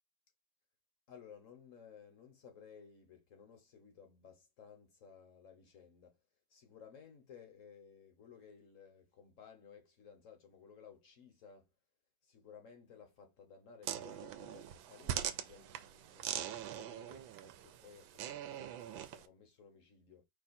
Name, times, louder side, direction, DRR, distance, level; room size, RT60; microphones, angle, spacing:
voice 1, 1.1-6.2 6.5-11.7 12.2-16.3 16.7-20.2, left 7 dB, 50° left, 1.1 m, -58 dB
sound 1, 13.8-19.3, right 10 dB, 80° right, 1.4 m, -42 dB
5.1 x 2.3 x 4.2 m
omnidirectional pair, 2.2 m